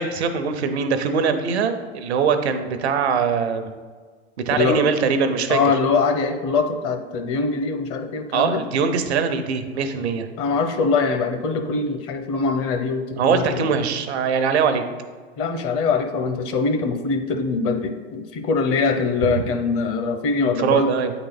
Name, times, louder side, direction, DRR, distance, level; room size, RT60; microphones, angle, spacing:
voice 1, 0.0-3.7 4.4-5.6 8.3-10.3 13.1-14.8 19.4-19.5 20.4-21.1, right 6 dB, 85° right, 8 dB, 0.8 m, -22 dB
voice 2, 4.5-4.8 5.5-8.6 10.4-13.6 15.4-20.9, left 4 dB, 45° left, 6 dB, 0.9 m, -23 dB
8.5 x 4.0 x 4.0 m, 1.5 s
hypercardioid pair, 105°, 32 cm